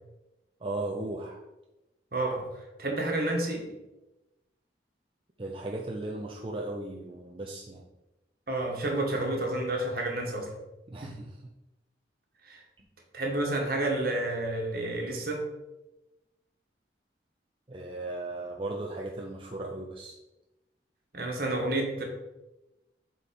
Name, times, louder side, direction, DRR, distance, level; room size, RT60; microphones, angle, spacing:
voice 1, 0.6-1.4 5.4-7.8 10.9-11.4 17.7-20.2, right 2 dB, 30° right, -1 dB, 0.6 m, -36 dB
voice 2, 2.1-3.6 8.5-10.5 11.0-11.1 12.4-12.6 13.1-15.5 21.1-22.0, right 2 dB, 55° right, 0 dB, 1.8 m, -30 dB
7.6 x 4.4 x 5.3 m, 1.0 s
head